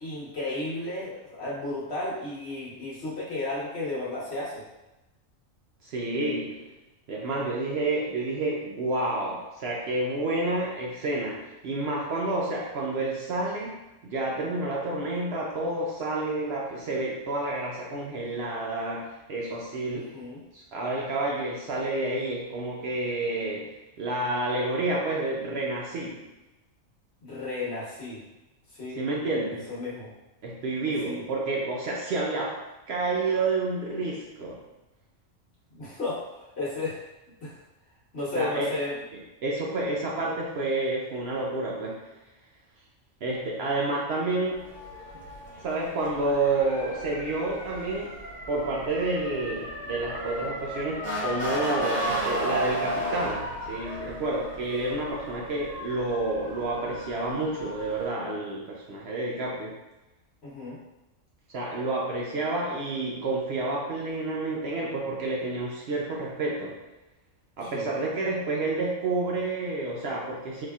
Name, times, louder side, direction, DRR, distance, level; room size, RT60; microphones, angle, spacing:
voice 1, 0.0-4.6 19.9-20.4 27.2-28.2 28.7-29.0 29.7-30.1 31.0-31.2 35.7-37.0 37.4-37.5 38.1-38.9 60.4-60.8 67.6-67.9, left 2 dB, 55° left, -8 dB, 1.3 m, -33 dB
voice 2, 5.8-6.7 7.1-13.7 14.0-20.1 20.5-26.2 29.0-29.7 30.4-32.6 32.9-34.6 38.4-38.7 39.4-42.0 43.2-44.6 45.6-48.1 48.5-59.8 61.5-66.8 67.6-70.7, right 2 dB, 65° right, -3 dB, 0.7 m, -29 dB
Motor vehicle (road) / Siren, 44.5-58.1, right 1 dB, 30° right, 1.2 m, -34 dB
4.0 x 2.8 x 2.3 m, 1.0 s
omnidirectional pair, 1.3 m